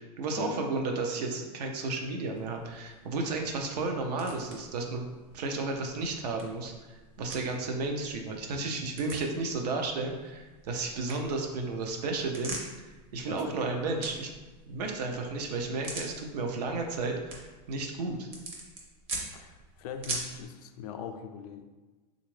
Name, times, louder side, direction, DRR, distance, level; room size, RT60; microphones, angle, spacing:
voice 1, 0.0-5.0 5.3-12.6 13.1-14.3 14.7-18.3, right 3 dB, 80° right, 2 dB, 0.6 m, -33 dB
sound 1, 2.3-20.4, right 2 dB, 30° right, 0.6 m, -45 dB
voice 2, 13.3-13.7 19.3-21.6, left 7 dB, 70° left, 7 dB, 0.4 m, -40 dB
3.4 x 2.5 x 3.1 m, 1.3 s
supercardioid pair, 150°, 21 cm